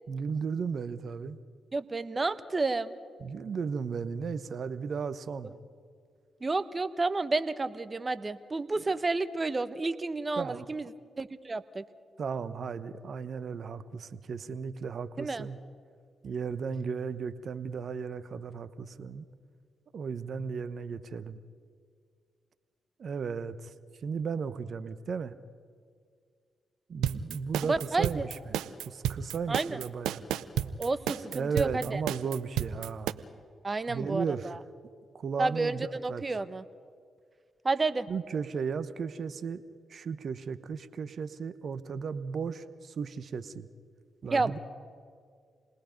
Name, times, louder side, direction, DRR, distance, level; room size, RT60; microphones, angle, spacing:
voice 1, 0.1-1.4 3.2-5.5 10.4-10.7 12.2-15.6 16.2-19.2 19.9-21.4 23.0-23.7 24.0-25.3 26.9-28.6 28.8-30.2 31.3-33.2 33.9-34.6 35.1-36.2 38.1-39.6 39.9-43.7 44.2-44.6, right 5 dB, 60° right, 12 dB, 1.0 m, -35 dB
voice 2, 1.7-2.9 6.4-10.9 11.2-11.8 15.2-15.5 27.6-28.2 29.5-29.8 30.8-32.0 33.6-34.6 35.4-36.6 37.6-38.1 44.3-44.6, right 3 dB, 35° right, 13 dB, 1.1 m, -30 dB
sound 1, 27.0-33.1, right 11 dB, 80° right, 0.6 m, -31 dB
28.0 x 19.5 x 5.3 m, 2.1 s
hypercardioid pair, 40°, 0 cm